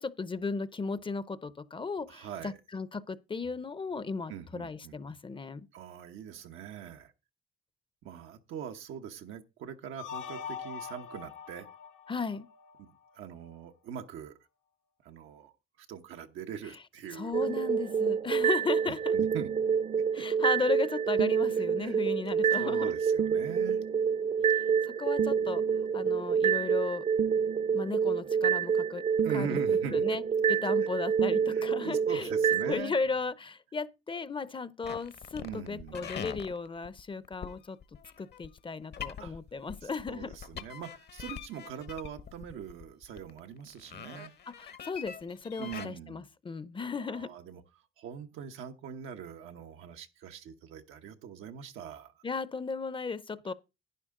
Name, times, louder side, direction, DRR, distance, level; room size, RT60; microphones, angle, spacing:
voice 1, 0.0-5.7 12.1-12.5 17.1-19.1 20.1-22.9 24.8-25.6 25.9-27.0 27.7-29.0 29.3-29.6 29.9-30.2 30.5-32.3 32.7-37.8 38.2-40.3 44.6-47.3 52.2-53.5, left 4 dB, 25° left, 0.6 m, -35 dB
voice 2, 2.1-2.6 4.3-5.0 5.7-7.1 8.0-11.7 12.8-12.9 13.1-14.3 15.0-15.5 15.8-17.3 18.9-19.5 20.2-20.3 21.8-22.0 22.5-23.8 29.2-30.1 30.5-30.6 31.5-33.0 35.4-36.2 39.2-39.4 39.8-44.3 45.6-46.3 47.0-47.6 48.0-52.1 53.5-53.6, right 8 dB, 90° right, 1.1 m, -42 dB
sound 1, 10.0-13.1, left 7 dB, 80° left, 1.3 m, -43 dB
sound 2, 17.3-32.7, right 7 dB, 40° right, 0.6 m, -27 dB
sound 3, 34.8-45.9, left 8 dB, 55° left, 1.0 m, -43 dB
11.0 x 9.6 x 3.7 m
cardioid pair, 90°, 20 cm